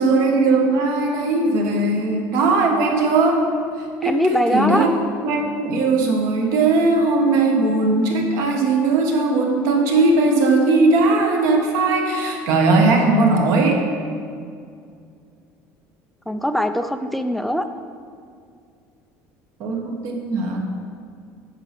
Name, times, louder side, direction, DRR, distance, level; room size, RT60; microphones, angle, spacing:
voice 1, 0.0-3.4 4.0-4.9 5.2-13.8 19.6-20.6, right 3 dB, 55° right, 2 dB, 1.5 m, -18 dB
voice 2, 4.0-4.9 16.3-17.7, equal, ahead, 8 dB, 0.3 m, -21 dB
8.9 x 5.9 x 6.0 m, 2.3 s
cardioid pair, 165°, 6 cm